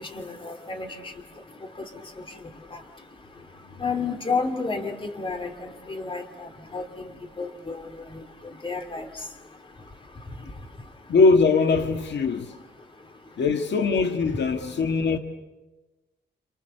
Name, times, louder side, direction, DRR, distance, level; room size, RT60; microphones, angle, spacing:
voice 1, 0.1-0.9 3.8-6.2 6.7-6.8 7.4-7.8 8.6-9.1, left 4 dB, 25° left, 2.6 m, -30 dB
voice 2, 11.1-12.5 13.4-15.2, left 4 dB, 70° left, 1.8 m, -21 dB
29.5 x 28.5 x 6.7 m
wide cardioid pair, 160°, 19 cm